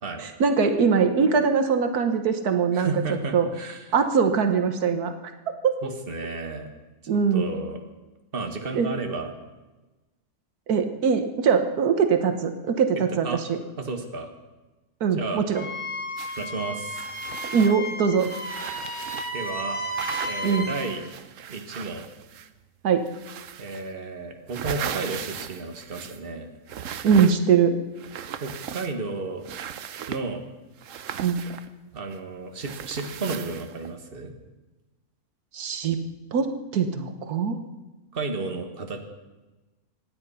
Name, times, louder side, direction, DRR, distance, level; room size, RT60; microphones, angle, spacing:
voice 1, 0.2-3.5 3.9-5.1 5.6-5.7 7.1-7.5 8.7-8.9 10.7-13.6 15.0-15.6 17.5-18.3 20.4-20.7 22.8-23.1 27.0-27.8 31.2-31.4 35.5-36.0 36.3-37.6, right 6 dB, 85° right, 8 dB, 1.6 m, -22 dB
voice 2, 2.7-3.9 5.8-6.7 7.3-7.8 8.3-9.3 13.1-13.4 13.8-14.3 15.2-15.4 16.4-17.1 19.0-19.8 20.1-21.0 21.5-22.0 23.6-26.5 28.4-29.5 30.1-30.4 31.9-34.3 38.1-39.0, right 3 dB, 40° right, 5 dB, 1.8 m, -33 dB
Wind instrument woodwind instrument, 15.5-20.8, equal, 20° left, 2.1 m, -33 dB
sound 1, 16.2-16.5 16.9-19.5 19.9-22.6 23.1-23.9 24.3-26.3 26.7-27.6 28.0-29.1 29.4-30.3 30.8-32.2 32.6-33.9, right 9 dB, 65° right, 1.1 m, -37 dB
25.0 x 10.0 x 5.6 m, 1.1 s
omnidirectional pair, 1.6 m